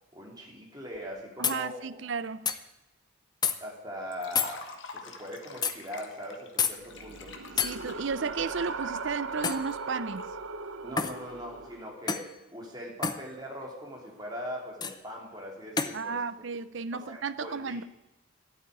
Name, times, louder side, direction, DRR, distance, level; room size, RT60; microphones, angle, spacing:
voice 1, 0.1-2.1 3.6-7.4 10.8-16.2 16.9-17.9, equal, 20° right, 3.2 m, -41 dB
sound 1, 1.0-1.1 1.4-1.6 2.5-2.6 3.4-3.6 4.4-4.5 5.6-5.8 6.6-6.8 7.6-7.7 9.4-9.7 11.0-11.2 12.1-12.3 13.0-13.2 14.8-15.0 15.8-16.0, left 6 dB, 20° left, 0.6 m, -28 dB
voice 2, 1.4-2.5 7.6-10.3 15.9-17.9, right 5 dB, 60° right, 0.6 m, -34 dB
Liquid, 4.1-10.2, left 4 dB, 65° left, 1.5 m, -47 dB
sound 2, 6.8-11.9, right 4 dB, 80° right, 1.0 m, -39 dB
12.0 x 8.8 x 9.4 m
head